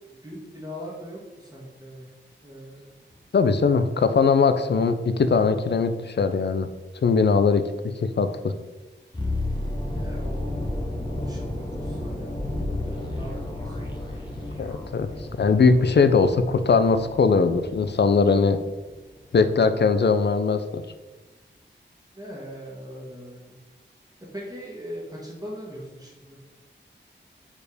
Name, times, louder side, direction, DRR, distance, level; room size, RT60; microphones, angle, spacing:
voice 1, 0.2-2.1 2.4-2.9 3.7-4.1 9.9-10.6 11.2-13.8 22.1-23.5 24.3-26.4, equal, 20° right, -5 dB, 1.6 m, -40 dB
sound 1, 3.1-4.0 5.8-5.9 12.3-17.0, left 2 dB, 45° left, 1.2 m, -38 dB
voice 2, 3.3-6.7 7.0-7.7 8.0-8.5 14.6-15.1 15.4-18.6 19.3-20.8, left 4 dB, 65° left, 10 dB, 0.6 m, -20 dB
sound 2, 9.1-19.1 19.4-19.6, left 1 dB, 25° left, 1.4 m, -33 dB
4.8 x 4.5 x 5.0 m, 1.1 s
wide cardioid pair, 60°, 19 cm